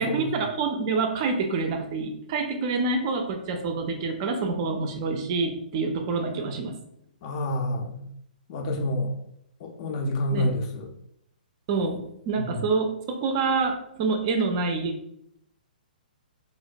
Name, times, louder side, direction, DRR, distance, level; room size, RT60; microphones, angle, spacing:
voice 1, 0.0-6.8 10.3-10.5 11.7-12.0 12.3-14.9, right 4 dB, 35° right, 4 dB, 0.4 m, -27 dB
voice 2, 7.2-8.0 8.5-9.1 9.6-10.9 12.4-12.6, left 1 dB, 40° left, 3 dB, 0.4 m, -28 dB
2.4 x 2.1 x 2.5 m, 0.76 s
figure-of-eight pair, 120°, 5 cm